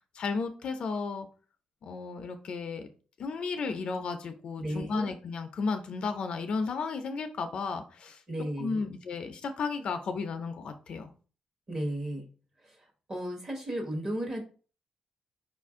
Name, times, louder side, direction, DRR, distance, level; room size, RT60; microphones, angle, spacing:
voice 1, 0.1-1.3 1.8-2.9 3.2-8.2 8.6-11.1, left 4 dB, 50° left, 7 dB, 0.4 m, -34 dB
voice 2, 4.6-5.1 8.3-8.9 11.7-12.2 13.1-14.4, right 1 dB, 25° right, 2 dB, 1.1 m, -34 dB
4.8 x 2.5 x 3.6 m, 0.38 s
wide cardioid pair, 170°, 2 cm